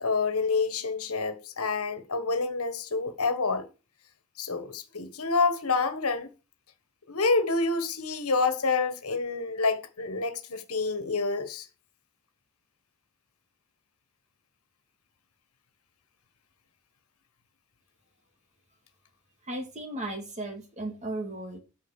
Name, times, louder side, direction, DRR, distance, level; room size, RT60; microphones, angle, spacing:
voice 1, 0.0-3.7 4.4-6.3 7.1-11.7, left 4 dB, 80° left, 1.6 m, -28 dB
voice 2, 19.5-21.6, right 1 dB, 35° right, 2.4 m, -35 dB
8.6 x 5.4 x 6.6 m
head